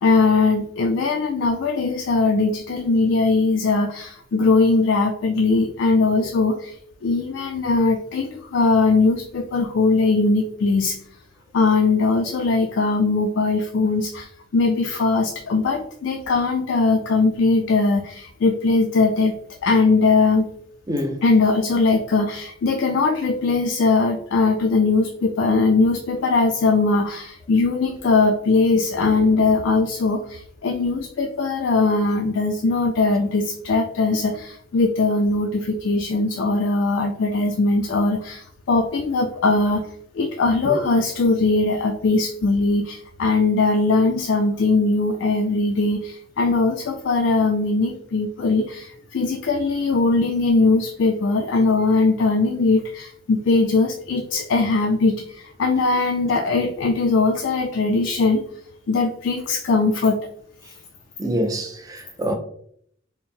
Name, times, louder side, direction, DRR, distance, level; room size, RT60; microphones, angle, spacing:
voice 1, 0.0-6.8 7.0-11.0 11.5-19.3 19.6-20.5 21.2-39.8 40.1-58.4 58.9-60.2, left 3 dB, 65° left, 0.3 m, -20 dB
voice 2, 20.9-21.2 40.6-40.9 61.2-62.4, equal, 20° right, 0.4 m, -26 dB
4.3 x 2.0 x 3.5 m
head